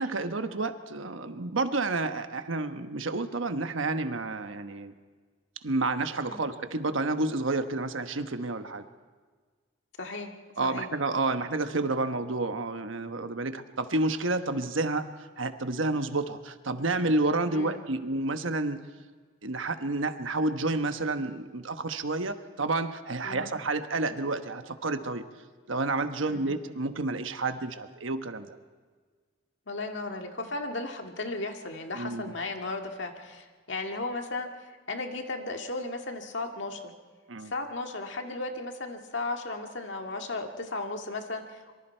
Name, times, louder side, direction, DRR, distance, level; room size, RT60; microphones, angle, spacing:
voice 1, 0.0-4.9 5.6-8.8 10.6-18.8 19.4-25.2 25.7-28.6 31.9-32.3 37.3-37.5, right 2 dB, 80° right, 9 dB, 1.2 m, -30 dB
voice 2, 10.0-10.3 10.6-10.9 17.5-17.8 23.2-23.5 26.3-26.6 29.7-36.9 37.5-41.7, left 2 dB, 65° left, 4 dB, 2.0 m, -35 dB
25.5 x 24.0 x 4.5 m, 1.5 s
head